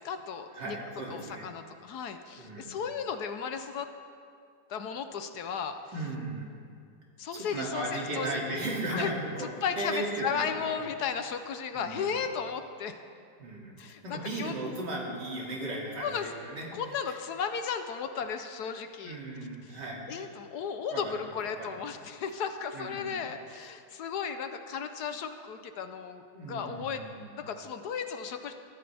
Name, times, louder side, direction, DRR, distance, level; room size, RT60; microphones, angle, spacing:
voice 1, 0.0-0.8 1.1-3.9 4.7-5.8 7.2-8.3 8.9-9.1 9.4-12.9 13.8-14.5 16.0-16.3 16.7-19.2 19.6-19.8 20.1-27.0 27.4-28.5, left 6 dB, 70° left, 8 dB, 1.3 m, -35 dB
voice 2, 0.5-1.5 2.4-2.7 5.9-6.6 7.3-9.5 9.8-10.7 11.7-12.2 13.4-13.8 14.0-16.7 17.1-17.2 19.0-20.2 20.9-21.7 22.7-23.3 26.3-27.4, right 2 dB, 70° right, -3 dB, 3.2 m, -36 dB
21.0 x 14.0 x 3.4 m, 2.2 s
omnidirectional pair, 1.9 m